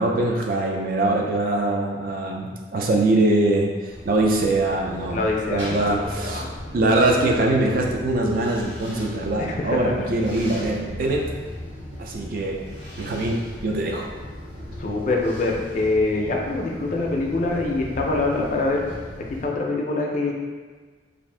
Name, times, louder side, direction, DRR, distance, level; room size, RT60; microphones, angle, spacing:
voice 1, 0.0-5.2 5.5-6.5 6.7-11.3 12.0-12.6 13.0-14.1, right 2 dB, 50° right, 0 dB, 0.3 m, -22 dB
sound 1, 3.9-19.5, left 1 dB, 75° right, 1.3 m, -37 dB
voice 2, 5.1-6.5 9.4-10.1 14.8-18.8 19.4-20.3, left 2 dB, 40° left, -1 dB, 0.4 m, -24 dB
2.6 x 2.4 x 3.2 m, 1.5 s
head